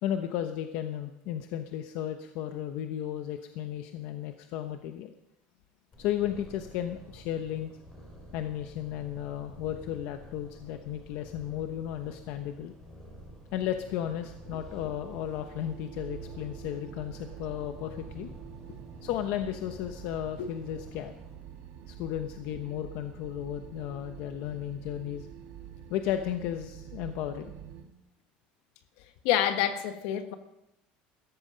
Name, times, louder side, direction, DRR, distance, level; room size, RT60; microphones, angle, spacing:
voice 1, 0.0-5.1 6.0-7.7 8.3-12.7 13.5-18.3 19.0-21.1 21.9-25.3 25.9-27.5, left 11 dB, 60° left, 7 dB, 1.0 m, -34 dB
Purr, 5.9-21.3, equal, 15° left, 5.2 m, -50 dB
sound 1, 13.3-27.8, right 9 dB, 50° right, 2.1 m, -47 dB
voice 2, 29.2-30.3, left 11 dB, 75° left, 8 dB, 1.7 m, -27 dB
16.5 x 13.5 x 5.2 m, 0.87 s
cardioid pair, 175°, 4 cm